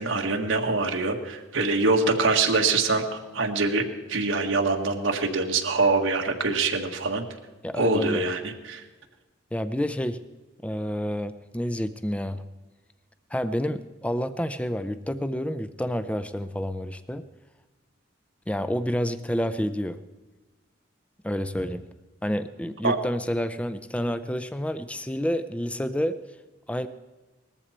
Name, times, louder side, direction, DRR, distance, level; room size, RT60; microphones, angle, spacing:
voice 1, 0.0-7.2 7.8-8.8 22.8-23.0, right 3 dB, 85° right, 2 dB, 1.6 m, -24 dB
voice 2, 7.6-8.2 9.5-10.2 10.6-12.4 13.3-17.3 18.5-20.0 21.2-21.8 22.2-26.2 26.7-26.9, equal, 5° left, 12 dB, 0.4 m, -29 dB
19.5 x 14.0 x 4.4 m, 1.2 s
head